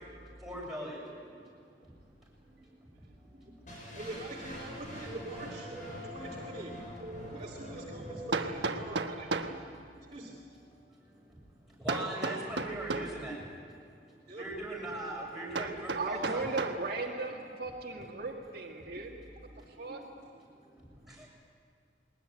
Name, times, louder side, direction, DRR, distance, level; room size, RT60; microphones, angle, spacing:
voice 1, 0.3-1.8 2.3-2.5 3.3-3.8 7.8-8.3 8.6-8.7 10.0-10.1 10.7-16.6 18.8-19.0 19.5-19.8 20.4-21.2, right 1 dB, ahead, -5 dB, 7.2 m, -42 dB
voice 2, 1.9-2.2 3.9-10.7 11.2-11.3 11.7-11.8 12.2-12.4 14.2-14.4 18.8-21.2, right 1 dB, 40° right, -4 dB, 2.5 m, -46 dB
sound 1, 3.7-9.7, equal, 50° left, 6.6 m, -45 dB
Hammer, 6.7-6.8 8.3-9.6 11.9-13.2 15.5-16.8, right 3 dB, 85° right, 1.3 m, -34 dB
voice 3, 15.9-19.2 19.8-20.0, right 3 dB, 60° right, -1 dB, 1.9 m, -37 dB
21.5 x 20.0 x 9.3 m, 2.3 s
head